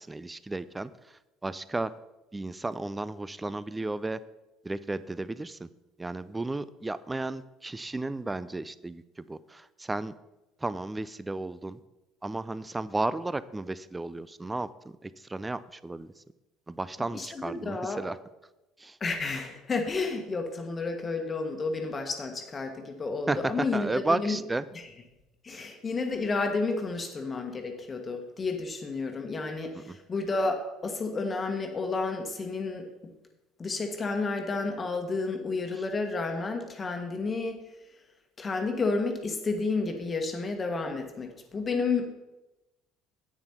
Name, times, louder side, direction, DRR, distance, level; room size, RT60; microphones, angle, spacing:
voice 1, 0.0-1.9 2.3-4.2 4.6-5.7 6.0-10.1 10.6-11.8 12.2-16.1 16.7-18.2 18.8-19.0 23.3-24.7 29.7-30.0, right 2 dB, 15° right, 17 dB, 0.5 m, -33 dB
voice 2, 17.1-18.0 19.0-24.4 25.4-33.1 33.6-37.6 38.4-42.1, left 3 dB, 30° left, 4 dB, 1.4 m, -31 dB
10.5 x 8.7 x 4.3 m, 1.0 s
figure-of-eight pair, 60°, 0 cm